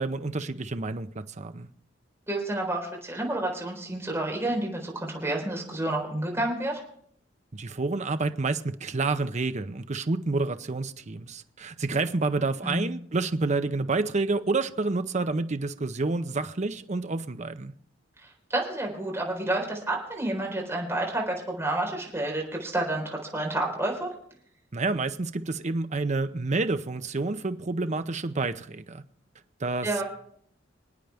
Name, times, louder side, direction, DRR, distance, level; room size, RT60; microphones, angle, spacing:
voice 1, 0.0-1.7 7.5-17.7 24.7-29.0 29.6-29.9, right 3 dB, 40° right, 0.7 m, -29 dB
voice 2, 2.3-6.8 12.6-12.8 18.2-24.1 29.8-30.0, right 1 dB, 15° right, 4.1 m, -30 dB
26.5 x 9.1 x 3.5 m
head